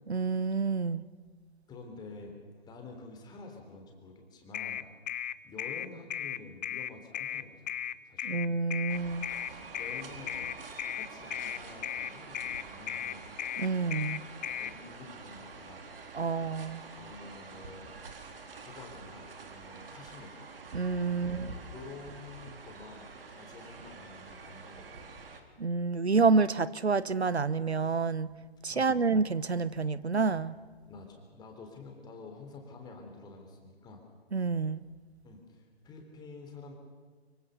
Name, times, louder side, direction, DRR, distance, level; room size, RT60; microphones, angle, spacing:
voice 1, 0.1-1.0 8.2-9.3 13.6-14.2 16.1-16.8 20.7-21.5 25.6-28.3 28.6-30.5 34.3-34.8, right 4 dB, 90° right, 17 dB, 1.1 m, -28 dB
voice 2, 1.7-2.4 2.7-4.9 5.4-8.4 9.4-10.6 10.9-13.2 14.6-15.8 17.0-18.3 18.6-20.3 21.1-21.4 21.7-25.4 28.7-29.0 30.9-34.0 35.2-36.7, left 3 dB, 15° left, 3 dB, 3.6 m, -49 dB
sound 1, 4.5-14.7, left 10 dB, 45° left, 0.8 m, -36 dB
sound 2, 8.9-25.4, right 4 dB, 60° right, 3.4 m, -47 dB
24.5 x 23.5 x 6.8 m, 1.4 s
figure-of-eight pair, 135°, 31 cm